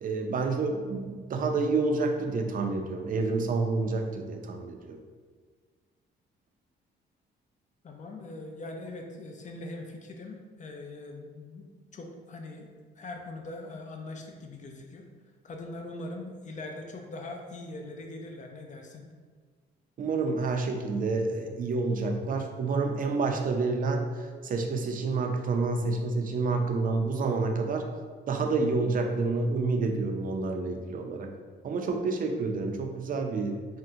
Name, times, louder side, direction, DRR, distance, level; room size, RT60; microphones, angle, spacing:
voice 1, 0.0-5.0 20.0-27.8 28.3-31.3 31.6-33.7, right 3 dB, 45° right, 3 dB, 0.4 m, -28 dB
voice 2, 7.8-11.7 11.9-12.7 13.0-15.0 15.4-19.1, left 2 dB, 40° left, 3 dB, 0.5 m, -41 dB
3.5 x 2.1 x 2.7 m, 1.5 s
cardioid pair, 90°, 20 cm